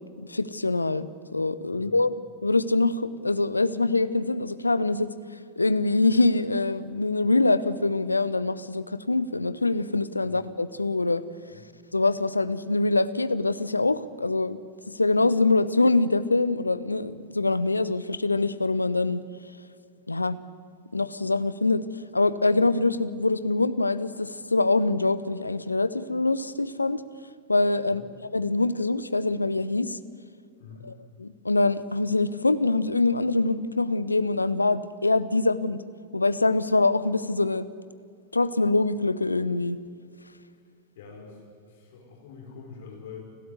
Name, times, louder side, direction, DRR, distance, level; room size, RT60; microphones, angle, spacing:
voice 1, 0.2-2.1 2.4-5.1 5.6-11.2 11.9-14.6 14.9-19.2 20.1-20.4 20.9-21.8 22.1-27.0 27.5-28.0 28.3-30.0 30.8-30.9 31.2-35.8 36.1-37.7 38.3-39.8, left 3 dB, 80° left, 15 dB, 0.8 m, -24 dB
voice 2, 1.7-2.1 10.2-10.4 11.5-11.7 27.9-28.0 30.6-30.9 40.5-40.6 41.0-43.2, left 5 dB, 55° left, 0 dB, 5.4 m, -46 dB
30.0 x 12.5 x 9.5 m, 2.2 s
figure-of-eight pair, 90°, 0 cm